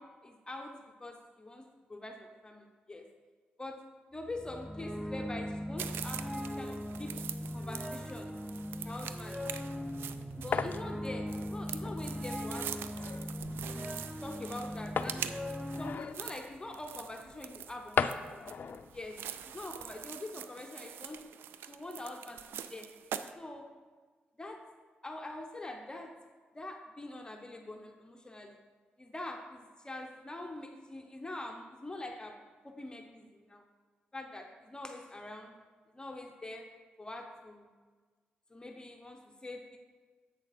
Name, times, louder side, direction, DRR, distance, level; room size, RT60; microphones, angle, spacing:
voice 1, 0.0-3.1 3.6-3.9 4.1-7.2 7.5-8.3 8.8-9.4 10.4-13.0 13.7-15.3 15.8-18.5 18.9-19.3 19.5-21.4 21.7-22.9 23.4-23.8 24.4-24.7 25.0-26.2 26.5-28.6 29.0-33.6 34.1-35.6 35.9-36.7 37.0-37.7 38.5-39.8, left 2 dB, 20° left, 3 dB, 0.9 m, -44 dB
sound 1, 4.2-16.0, equal, ahead, 0.5 m, -39 dB
sound 2, 5.8-23.3, right 9 dB, 90° right, 0.4 m, -44 dB
sound 3, 9.6-20.1, left 6 dB, 60° left, 0.4 m, -40 dB
8.3 x 6.5 x 4.2 m, 1.4 s
cardioid pair, 65°, 4 cm